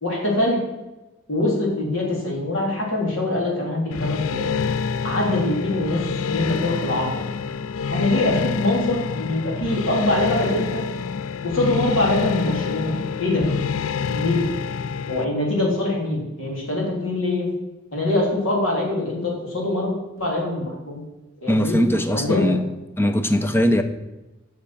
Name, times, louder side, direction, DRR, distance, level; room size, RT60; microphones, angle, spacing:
voice 1, 0.0-0.6 1.3-4.5 5.0-6.0 6.3-7.1 7.9-10.8 11.4-12.9 13.2-13.4 14.1-14.4 15.1-17.5 17.9-21.0 21.4-21.8 22.1-22.4, left 1 dB, 70° left, -2 dB, 3.4 m, -23 dB
sound 1, 3.9-15.2, left 6 dB, 90° left, 0.4 m, -27 dB
voice 2, 21.5-22.6 23.0-23.8, equal, 10° left, 8 dB, 0.7 m, -20 dB
8.3 x 6.3 x 7.6 m, 1.1 s
head